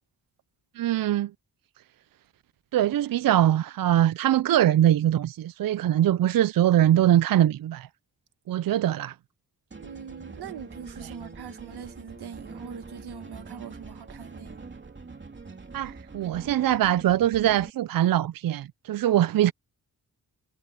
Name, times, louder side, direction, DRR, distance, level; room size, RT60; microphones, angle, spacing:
voice 1, 0.8-1.3 2.7-7.9 8.5-9.2 15.7-19.5, right 12 dB, 60° right, 0.5 m, -22 dB
sound 1, 9.7-17.7, right 4 dB, 30° right, 2.9 m, -43 dB
voice 2, 9.8-14.6, right 8 dB, 85° right, 1.4 m, -42 dB
wide cardioid pair, 135°, 38 cm